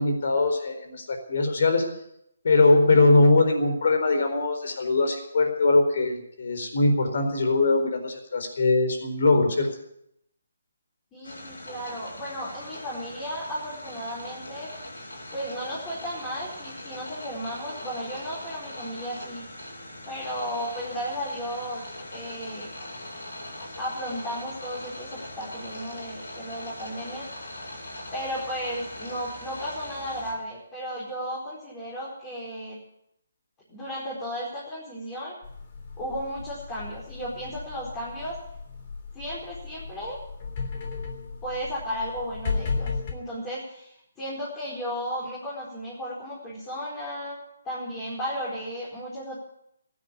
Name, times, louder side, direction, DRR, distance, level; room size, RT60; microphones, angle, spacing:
voice 1, 0.0-1.8 2.4-9.7, left 3 dB, 60° left, 5 dB, 4.3 m, -21 dB
voice 2, 11.1-14.7 15.3-19.5 20.1-21.8 22.1-22.7 23.8-27.3 28.1-32.8 33.7-35.3 36.0-38.3 39.1-40.2 41.4-47.4 47.6-49.4, equal, 15° left, -7 dB, 4.8 m, -34 dB
sound 1, 11.2-30.3, left 1 dB, 85° left, 6.6 m, -40 dB
sound 2, 35.4-43.1, left 4 dB, 35° left, 3.2 m, -35 dB
16.0 x 9.9 x 8.4 m, 0.77 s
hypercardioid pair, 155°, 0 cm